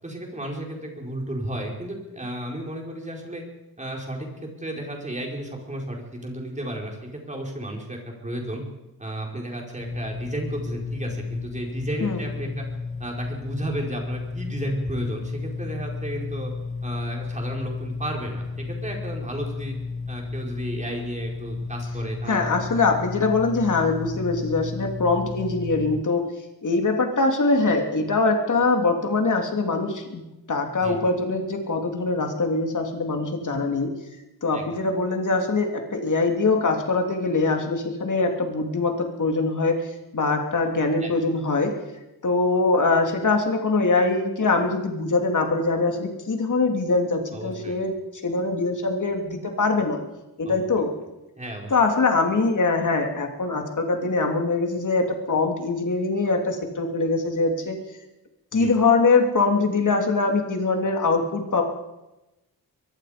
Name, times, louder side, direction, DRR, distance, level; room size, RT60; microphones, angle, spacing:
voice 1, 0.0-3.4 3.8-8.6 9.0-12.6 13.0-16.5 16.8-19.7 20.1-22.6 30.8-31.0 34.5-34.7 41.0-41.1 47.3-47.8 50.4-50.6 51.4-51.7 58.5-58.7, right 1 dB, 20° right, 0 dB, 4.8 m, -33 dB
sound 1, 9.8-26.0, left 4 dB, 20° left, 0.7 m, -33 dB
voice 2, 22.3-26.2 26.6-33.9 34.4-41.7 42.2-47.9 48.2-50.0 50.4-50.9 51.7-57.8 58.5-61.6, left 3 dB, 50° left, 3 dB, 3.0 m, -23 dB
23.0 x 23.0 x 5.2 m, 1.0 s
wide cardioid pair, 160°, 38 cm